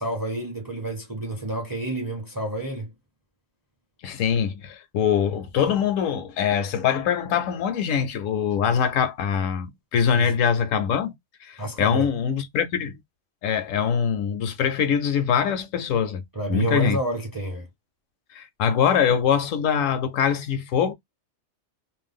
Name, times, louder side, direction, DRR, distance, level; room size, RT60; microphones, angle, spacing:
voice 1, 0.0-2.9 10.1-10.3 11.6-12.1 16.3-17.7, right 1 dB, 20° right, 0.6 m, -29 dB
voice 2, 4.0-11.1 11.4-13.0 13.4-16.2 16.5-17.0 18.3-20.9, left 7 dB, 75° left, 0.9 m, -23 dB
2.5 x 2.2 x 3.4 m
omnidirectional pair, 1.4 m